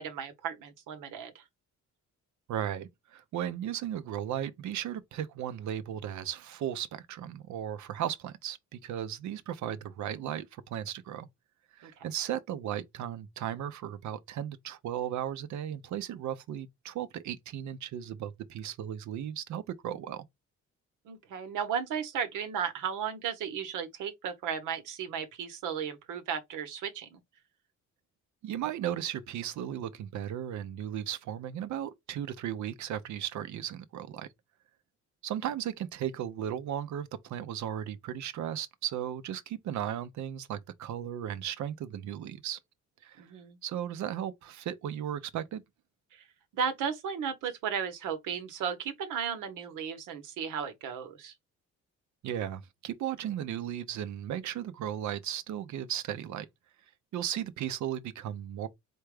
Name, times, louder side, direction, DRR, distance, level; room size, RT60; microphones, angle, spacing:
voice 1, 0.0-1.4 11.8-11.9 21.1-27.2 43.2-43.6 46.1-46.2 46.5-51.3, right 7 dB, 90° right, 1.0 m, -35 dB
voice 2, 2.5-11.3 11.7-20.3 28.4-34.3 35.2-42.6 43.0-43.3 43.6-45.6 52.2-56.5 57.1-58.7, right 10 dB, 70° right, 0.6 m, -36 dB
4.4 x 2.3 x 4.7 m
cardioid pair, 90°, 30 cm